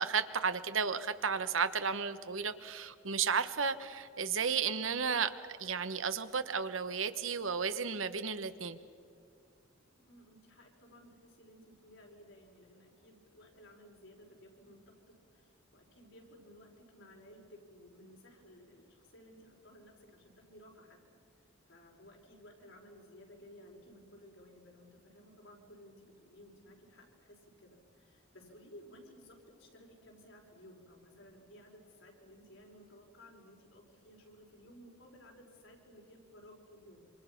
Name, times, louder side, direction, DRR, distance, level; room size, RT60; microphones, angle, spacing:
voice 1, 0.0-5.3 5.6-8.8, right 6 dB, 90° right, 11 dB, 1.2 m, -33 dB
voice 2, 10.0-21.0 21.7-37.1, equal, 80° left, 0 dB, 5.3 m, -57 dB
27.0 x 26.0 x 6.0 m, 2.3 s
head